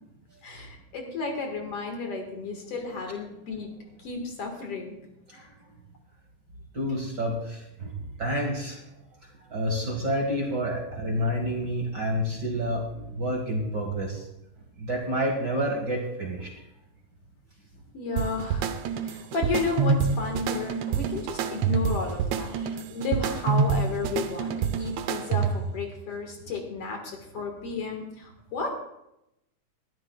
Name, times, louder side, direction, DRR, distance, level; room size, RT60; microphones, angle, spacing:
voice 1, 0.4-3.7 4.0-5.0 5.3-5.5 17.9-18.7 19.0-22.5 22.9-28.8, left 4 dB, 55° left, 2 dB, 2.5 m, -32 dB
voice 2, 6.7-8.8 9.5-14.3 14.8-16.5 22.6-22.7 27.3-27.4, equal, 40° right, 1 dB, 1.9 m, -29 dB
sound 1, 18.2-25.8, right 6 dB, 75° right, 1.9 m, -27 dB
21.0 x 12.0 x 2.3 m, 0.84 s
omnidirectional pair, 3.5 m